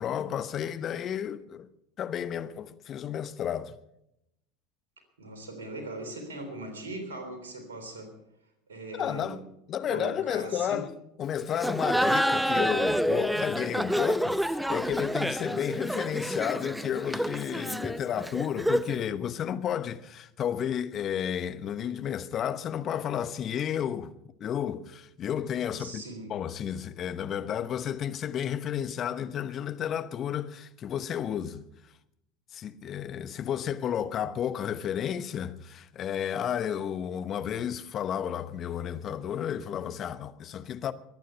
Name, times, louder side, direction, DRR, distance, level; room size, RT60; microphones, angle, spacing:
voice 1, 0.0-1.7 2.0-3.8 8.9-9.4 9.7-10.9 11.2-24.1 24.4-26.0 26.3-31.6 32.5-40.9, left 9 dB, 40° left, 0.9 m, -32 dB
voice 2, 5.2-8.1 8.7-9.4 9.9-10.9 25.8-26.3, right 2 dB, 80° right, 3.4 m, -39 dB
Laughter, 11.5-19.0, equal, ahead, 0.7 m, -28 dB
22.5 x 9.3 x 5.7 m
figure-of-eight pair, 75°, 0 cm